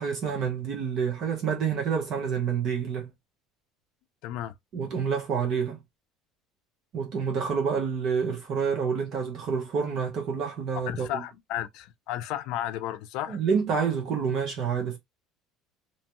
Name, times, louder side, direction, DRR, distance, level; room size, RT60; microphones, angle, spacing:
voice 1, 0.0-3.1 4.7-5.8 6.9-11.2 13.3-15.0, right 6 dB, 45° right, 0.9 m, -28 dB
voice 2, 4.2-4.5 10.9-13.4, left 12 dB, 65° left, 0.4 m, -33 dB
2.9 x 2.2 x 2.9 m
cardioid pair, 150°, 0 cm